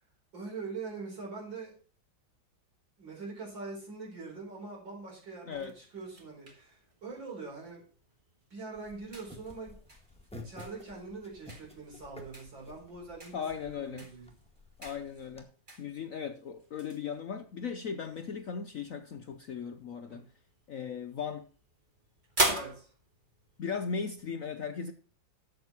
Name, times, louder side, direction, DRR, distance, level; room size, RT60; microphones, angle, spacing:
voice 1, 0.3-1.7 3.0-7.8 8.5-9.7 10.3-14.3 20.1-20.3 22.5-22.9, right 4 dB, 70° right, 5.3 m, -43 dB
sound 1, 5.5-24.3, right 2 dB, 25° right, 2.3 m, -42 dB
sound 2, 8.7-15.4, left 1 dB, 5° left, 1.8 m, -52 dB
voice 2, 13.3-14.1 14.8-15.5 15.8-20.2 20.7-21.5 23.6-24.9, left 6 dB, 60° left, 0.9 m, -37 dB
12.5 x 7.7 x 4.4 m
omnidirectional pair, 2.1 m